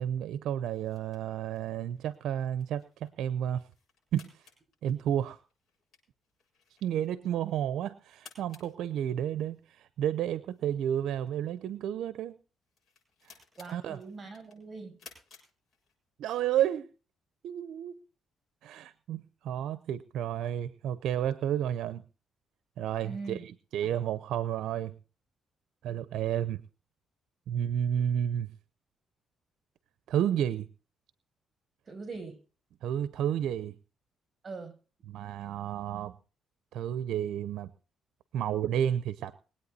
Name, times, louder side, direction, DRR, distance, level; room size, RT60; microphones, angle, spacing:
voice 1, 0.0-3.6 4.1-4.4 4.8-5.4 6.8-12.4 13.2-13.3 13.7-14.0 16.2-16.9 17.4-18.0 18.6-22.0 22.8-24.9 25.8-26.6 27.5-28.5 30.1-30.7 32.8-33.7 35.1-36.1 36.7-37.7 38.3-39.3, right 10 dB, 80° right, 15 dB, 0.6 m, -31 dB
sound 1, 0.6-16.3, left 5 dB, 60° left, 7.1 m, -60 dB
voice 2, 13.6-15.0 23.0-23.4 31.9-32.4 34.4-34.7, right 4 dB, 35° right, 8 dB, 6.9 m, -41 dB
22.0 x 8.7 x 4.2 m, 0.35 s
cardioid pair, 90°, 0 cm